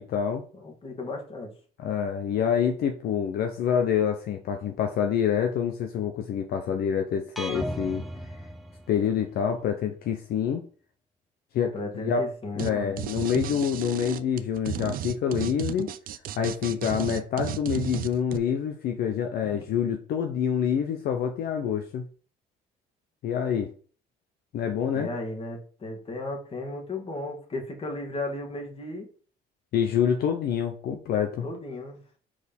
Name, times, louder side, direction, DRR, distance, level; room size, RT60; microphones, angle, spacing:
voice 1, 0.0-0.4 1.8-8.0 8.9-10.6 11.5-12.3 12.6-15.9 16.4-22.1 23.2-23.7 24.5-25.1 29.7-31.5, left 8 dB, 65° left, 5 dB, 0.8 m, -27 dB
voice 2, 0.5-1.5 11.7-13.0 24.9-29.1 31.4-32.0, left 2 dB, 35° left, 2 dB, 2.1 m, -35 dB
sound 1, 7.4-9.4, equal, ahead, 0.7 m, -36 dB
sound 2, 12.6-12.7 13.0-18.4, right 11 dB, 60° right, 0.5 m, -33 dB
5.0 x 4.2 x 5.3 m, 0.41 s
cardioid pair, 110°, 17 cm